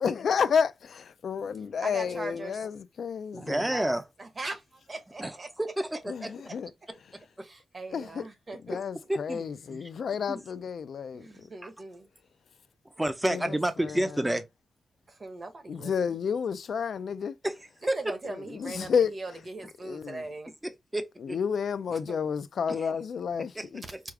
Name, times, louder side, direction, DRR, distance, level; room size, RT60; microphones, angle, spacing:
voice 1, 0.0-3.7 6.1-6.7 7.9-8.3 8.6-11.5 13.3-14.2 15.7-17.4 18.2-19.1 19.8-20.2 21.2-23.8, left 6 dB, 60° left, 0.3 m, -31 dB
voice 2, 1.8-2.7 3.7-5.5 7.4-8.9 11.1-12.1 15.1-16.2 17.9-20.5 22.1-22.2, right 2 dB, 30° right, 1.0 m, -40 dB
voice 3, 3.3-4.0 5.2-6.3 7.4-7.5 8.7-8.8 9.1-9.4 9.7-9.8 10.3-10.4 11.6-11.7 13.0-14.4 17.4-17.5 17.9-18.1 20.6-21.4 22.7-22.9 23.6-23.7 23.9-24.0, right 1 dB, 10° right, 0.5 m, -30 dB
4.7 x 2.3 x 4.7 m
wide cardioid pair, 165°, 0 cm